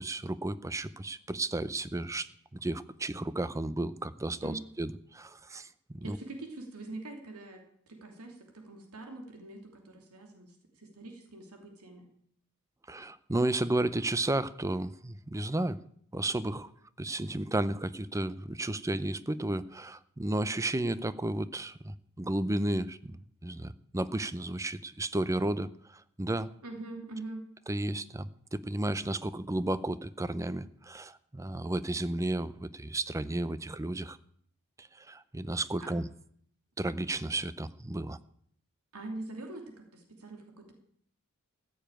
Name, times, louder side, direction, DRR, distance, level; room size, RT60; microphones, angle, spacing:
voice 1, 0.0-5.7 5.9-6.2 12.9-15.8 16.1-16.7 17.0-26.5 27.7-34.2 34.8-36.1 36.8-38.2, right 1 dB, 15° right, 16 dB, 0.5 m, -33 dB
voice 2, 6.0-12.1 26.6-27.4 35.8-35.9 38.9-40.7, right 2 dB, 85° right, 3 dB, 2.9 m, -44 dB
14.5 x 7.0 x 9.1 m, 0.64 s
head